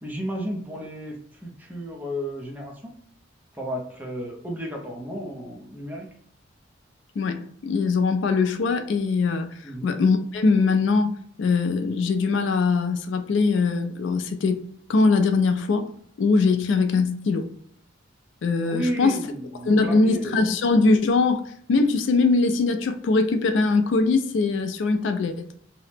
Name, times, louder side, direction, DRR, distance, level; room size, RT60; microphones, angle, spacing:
voice 1, 0.0-2.9 3.5-6.1 9.6-9.9 18.7-20.4, equal, 10° right, 0.5 m, -33 dB
voice 2, 7.2-11.1 11.4-15.9 16.2-17.5 18.4-19.2 19.7-25.5, left 4 dB, 65° left, 0.3 m, -22 dB
2.8 x 2.0 x 3.2 m
head